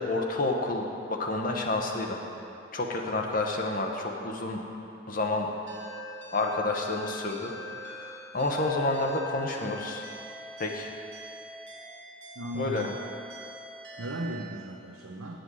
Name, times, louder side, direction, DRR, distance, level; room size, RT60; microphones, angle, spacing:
voice 1, 0.0-2.2 2.7-4.6 5.1-5.5 6.3-10.0 10.6-10.9 12.6-12.9, left 2 dB, 40° left, 1 dB, 0.9 m, -29 dB
sound 1, 5.7-14.4, equal, 60° right, 2.0 m, -44 dB
voice 2, 12.4-13.0 14.0-15.4, right 1 dB, 80° right, 0 dB, 0.6 m, -36 dB
8.4 x 7.8 x 6.2 m, 2.7 s
head